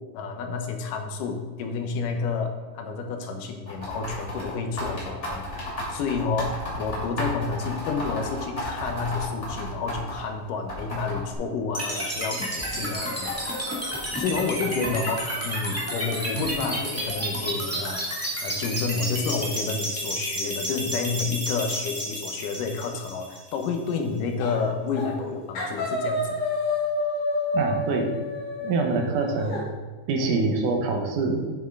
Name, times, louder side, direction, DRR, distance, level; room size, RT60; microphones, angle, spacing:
voice 1, 0.1-13.4 14.2-15.2 15.4-18.1 18.4-26.5, left 5 dB, 90° left, 4 dB, 2.5 m, -30 dB
sound 1, 3.7-10.2 10.7-11.3, left 1 dB, 20° left, 2.8 m, -33 dB
sound 2, 11.7-23.8, equal, 10° right, 0.9 m, -31 dB
sound 3, 24.4-24.7 24.9-25.3 25.6-29.6, left 2 dB, 60° left, 3.6 m, -29 dB
voice 2, 27.5-28.1 28.6-29.6 30.1-31.4, right 3 dB, 80° right, 3 dB, 2.5 m, -25 dB
8.8 x 7.1 x 3.7 m, 1.4 s
omnidirectional pair, 3.7 m